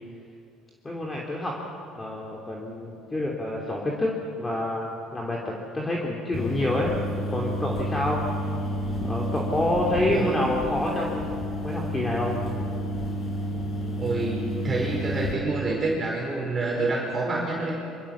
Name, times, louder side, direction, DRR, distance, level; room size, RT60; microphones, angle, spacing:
voice 1, 0.8-1.6 1.9-6.9 7.3-8.2 9.0-12.4, left 1 dB, 15° left, -2 dB, 3.3 m, -28 dB
sound 1, 6.3-15.3, equal, 35° left, 5.6 m, -30 dB
voice 2, 14.0-17.8, right 2 dB, 25° right, -2 dB, 5.1 m, -27 dB
26.0 x 25.5 x 7.4 m, 2.6 s
cardioid pair, 135°, 0 cm